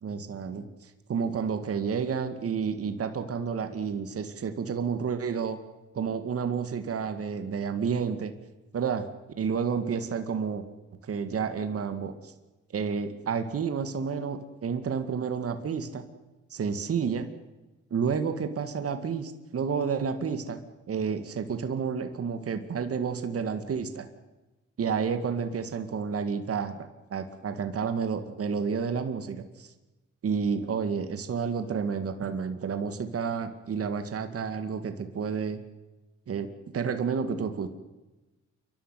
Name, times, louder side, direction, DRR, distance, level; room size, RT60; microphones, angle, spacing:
voice 1, 0.0-5.6 5.9-8.3 8.7-9.1 9.4-10.6 11.0-12.3 12.7-16.0 16.5-17.3 17.9-20.6 20.9-24.1 24.8-29.7 30.2-35.6 36.3-36.5 36.7-37.7, right 6 dB, 50° right, 9 dB, 2.1 m, -30 dB
29.0 x 12.0 x 9.4 m, 1.1 s
cardioid pair, 90°, 30 cm